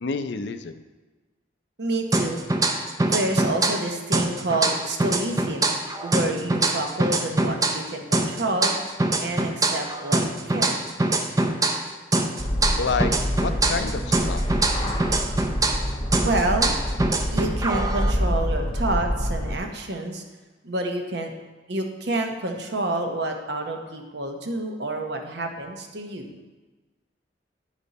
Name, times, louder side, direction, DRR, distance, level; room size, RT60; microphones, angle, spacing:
voice 1, 0.0-0.8 12.8-13.1 13.4-14.4, left 4 dB, 65° left, 9 dB, 0.5 m, -28 dB
voice 2, 1.8-2.4 3.1-8.7 9.2-10.8 16.2-16.8 17.3-20.2 20.6-21.3 21.7-26.3, right 2 dB, 60° right, 4 dB, 0.9 m, -28 dB
sound 1, 2.1-3.9 4.1-7.9 8.1-11.9 12.1-15.9 16.1-18.1, right 2 dB, 20° right, 0.5 m, -23 dB
sound 2, 12.4-19.6, equal, 25° left, 0.9 m, -27 dB
10.0 x 5.2 x 4.1 m, 1.2 s
head